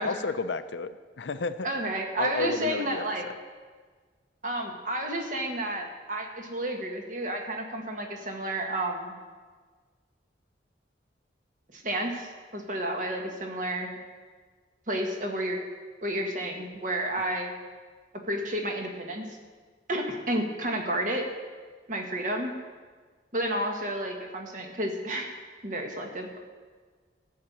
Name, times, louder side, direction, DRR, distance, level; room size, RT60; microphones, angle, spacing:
voice 1, 0.0-1.7 2.2-3.3, left 4 dB, 85° left, 11 dB, 0.6 m, -32 dB
voice 2, 1.6-3.2 4.4-9.2 11.7-13.9 14.9-15.6 16.0-17.5 18.3-19.4 19.9-21.3 21.9-22.5 23.3-25.3 25.6-26.4, right 1 dB, 45° right, 2 dB, 1.7 m, -31 dB
14.0 x 5.9 x 8.6 m, 1.5 s
head